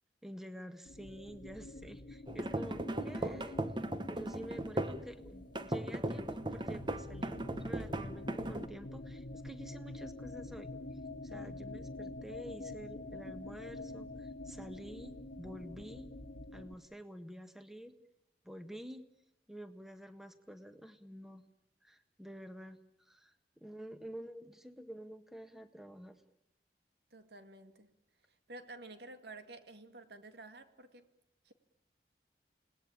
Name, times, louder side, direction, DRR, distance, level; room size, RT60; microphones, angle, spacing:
voice 1, 0.2-3.6 4.1-16.1 16.5-17.9 18.4-19.0 19.5-21.4 21.8-26.2, equal, ahead, 9 dB, 1.5 m, -49 dB
sound 1, 0.9-16.7, left 2 dB, 70° left, 1.6 m, -47 dB
sound 2, 2.3-5.0 5.5-8.7, right 1 dB, 25° right, 1.2 m, -37 dB
voice 2, 27.1-27.9 28.3-31.1 31.4-31.5, right 2 dB, 70° right, 8 dB, 2.2 m, -52 dB
29.0 x 19.5 x 8.8 m, 0.80 s
head